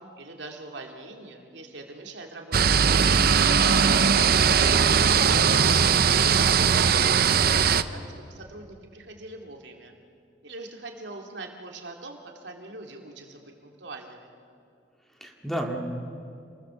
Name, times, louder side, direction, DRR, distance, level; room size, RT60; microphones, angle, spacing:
voice 1, 0.0-4.4 5.5-9.9 10.4-14.3, right 2 dB, 90° right, 2 dB, 2.6 m, -42 dB
sound 1, 2.5-7.8, right 6 dB, 60° right, 0.7 m, -20 dB
voice 2, 5.0-5.4 15.2-15.8, equal, ahead, 1 dB, 2.3 m, -32 dB
28.0 x 20.0 x 7.0 m, 2.5 s
head